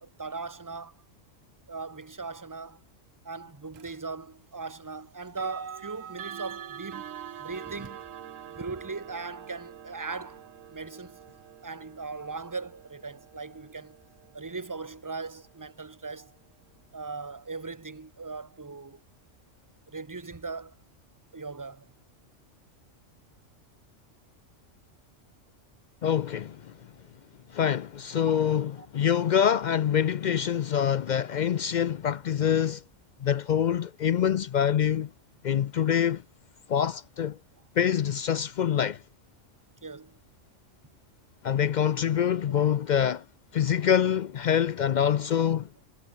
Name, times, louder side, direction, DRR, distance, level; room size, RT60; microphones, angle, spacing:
voice 1, 0.0-1.0 1.7-2.8 3.2-7.1 7.4-8.0 8.6-10.4 10.7-11.2 11.6-14.0 14.3-16.3 16.9-19.0 19.9-20.7 21.3-21.9 28.1-28.4 28.8-28.9 39.8-40.2 42.5-42.7, right 4 dB, 15° right, 0.9 m, -39 dB
sound 1, 3.7-4.0 5.3-16.1, right 10 dB, 85° right, 1.3 m, -45 dB
voice 2, 26.0-26.6 27.5-32.8 33.2-35.1 35.4-36.2 36.7-37.4 37.8-39.0 41.4-43.2 43.5-45.7, left 9 dB, 70° left, 0.4 m, -25 dB
omnidirectional pair, 1.3 m